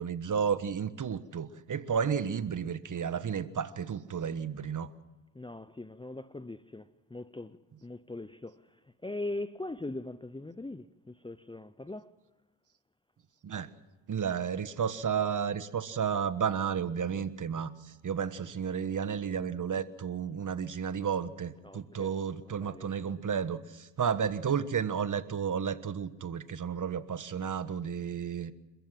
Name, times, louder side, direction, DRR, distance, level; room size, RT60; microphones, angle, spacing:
voice 1, 0.0-4.9 13.4-13.7 14.1-17.7 18.0-28.5, right 7 dB, 45° right, 1.4 m, -32 dB
voice 2, 5.3-8.6 9.0-12.1 17.1-17.2 21.6-22.1 22.4-23.2, left 2 dB, 10° left, 0.7 m, -41 dB
28.0 x 14.5 x 7.6 m
cardioid pair, 80°, 44 cm